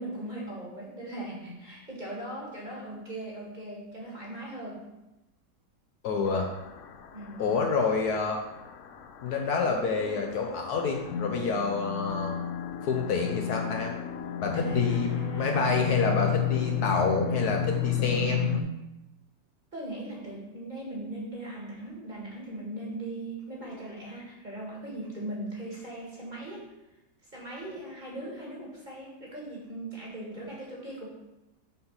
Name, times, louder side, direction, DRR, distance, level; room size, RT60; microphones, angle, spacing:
voice 1, 0.0-4.8 7.1-7.5 14.5-15.7 16.2-16.4 19.7-26.7 27.3-31.1, right 1 dB, 25° right, -4 dB, 1.6 m, -39 dB
voice 2, 6.0-6.5 7.4-8.4 9.2-12.3 12.8-13.9 14.4-15.1 15.3-18.4, left 4 dB, 65° left, 2 dB, 1.2 m, -28 dB
sound 1, 6.3-18.6, left 7 dB, 85° left, 0.6 m, -32 dB
5.8 x 4.0 x 5.5 m, 0.96 s
omnidirectional pair, 1.9 m